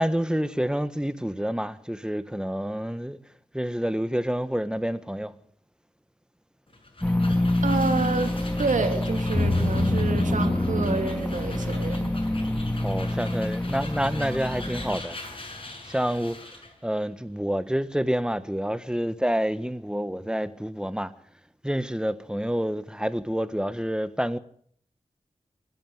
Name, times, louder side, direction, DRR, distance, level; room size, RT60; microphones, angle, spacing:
voice 1, 0.0-3.2 3.5-5.3 12.8-15.2 15.9-16.4 16.8-21.1 21.6-24.4, equal, 5° right, 1.6 m, -28 dB
sound 1, 6.7-16.8, left 2 dB, 45° left, 7.3 m, -42 dB
sound 2, 7.0-15.0, left 1 dB, 10° left, 2.1 m, -26 dB
voice 2, 7.6-8.3 8.6-12.1, right 4 dB, 90° right, 3.1 m, -28 dB
25.5 x 11.0 x 9.6 m
cardioid pair, 40°, 13 cm